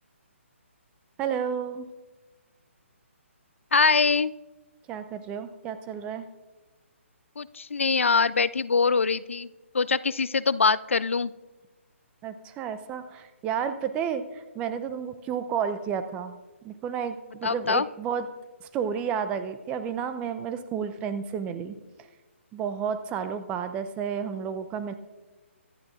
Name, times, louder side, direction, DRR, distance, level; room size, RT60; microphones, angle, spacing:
voice 1, 1.2-1.9 4.9-6.3 12.2-16.4 16.6-18.3 18.6-21.7 22.5-24.9, right 7 dB, 15° right, 11 dB, 0.6 m, -31 dB
voice 2, 3.7-4.3 7.4-9.5 9.7-11.3 17.4-17.9, left 5 dB, 70° left, 18 dB, 0.4 m, -23 dB
24.5 x 11.0 x 2.6 m, 1.2 s
figure-of-eight pair, 135°, 7 cm